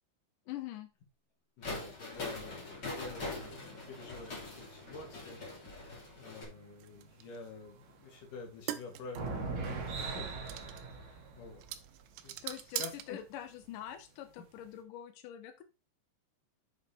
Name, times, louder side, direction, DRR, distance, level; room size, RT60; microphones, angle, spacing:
voice 1, 0.5-0.9 12.4-15.6, left 11 dB, 85° left, 7 dB, 1.8 m, -44 dB
voice 2, 1.6-10.3 10.9-11.6 12.2-12.4 12.8-13.2 14.4-14.5, left 4 dB, 55° left, 2 dB, 3.3 m, -49 dB
sound 1, 1.6-6.4, left 2 dB, 30° left, 2.5 m, -43 dB
sound 2, 3.1-6.9 7.3-7.4 7.7-8.1 8.9-12.3 13.0-13.1 13.6-13.7, right 4 dB, 55° right, 2.3 m, -43 dB
sound 3, 6.8-13.7, right 13 dB, 80° right, 2.9 m, -44 dB
7.4 x 6.4 x 4.4 m, 0.29 s
omnidirectional pair, 5.2 m